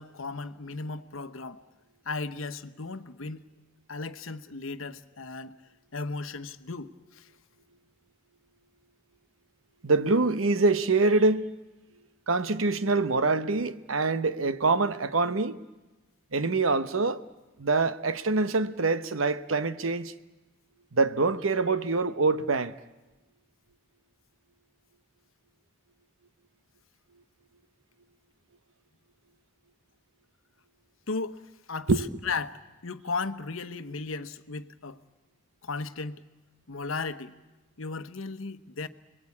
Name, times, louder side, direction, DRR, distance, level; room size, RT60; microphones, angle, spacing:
voice 1, 0.0-1.6 2.0-3.5 3.9-5.6 5.9-7.3 31.1-31.4 31.7-31.9 32.2-35.0 35.6-36.2 36.7-37.4 37.8-38.9, left 4 dB, 85° left, 1.1 m, -35 dB
voice 2, 9.8-11.5 12.3-15.6 16.3-17.2 17.6-20.1 20.9-22.7 31.9-32.0, right 3 dB, 85° right, 1.0 m, -25 dB
29.5 x 21.5 x 8.5 m
head